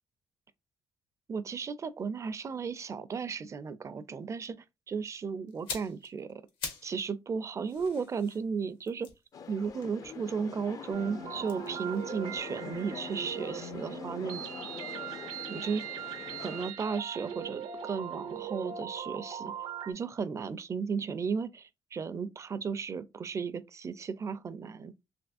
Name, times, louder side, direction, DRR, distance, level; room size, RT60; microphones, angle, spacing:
voice 1, 1.3-6.4 6.8-9.1 9.5-14.5 15.5-16.0 16.4-19.5 19.9-24.9, right 5 dB, 35° right, 0.4 m, -35 dB
sound 1, 5.5-7.0 7.3-10.6 11.4-13.4 13.7-13.9, left 5 dB, 80° left, 1.1 m, -45 dB
sound 2, 9.3-16.7, left 6 dB, 45° left, 0.4 m, -45 dB
sound 3, 10.9-19.9, right 7 dB, 85° right, 0.7 m, -40 dB
3.4 x 2.9 x 2.5 m
cardioid pair, 85°, 8 cm